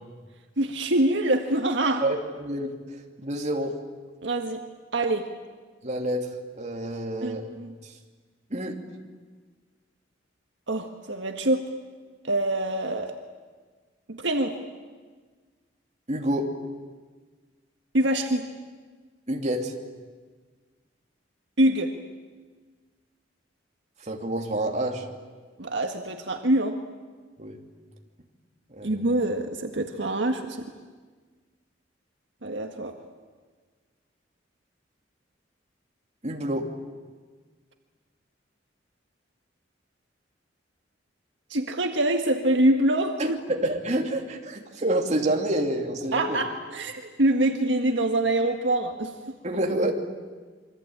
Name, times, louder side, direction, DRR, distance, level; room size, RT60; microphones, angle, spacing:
voice 1, 0.6-2.0 4.2-4.6 4.9-5.3 7.2-7.7 10.7-11.6 12.2-13.2 14.1-14.6 17.9-18.5 21.6-21.9 25.6-26.8 28.8-30.7 32.4-32.9 41.5-43.4 46.1-49.4, right 1 dB, 70° right, 5 dB, 1.7 m, -25 dB
voice 2, 2.0-2.7 3.2-3.7 5.8-6.3 6.5-7.5 7.8-7.9 8.5-8.8 16.1-16.5 19.3-19.7 24.0-25.0 27.4-27.6 28.7-29.1 36.2-36.7 43.2-46.4 49.4-49.9, right 1 dB, 40° right, 3 dB, 2.8 m, -28 dB
27.0 x 24.0 x 8.9 m, 1.4 s
head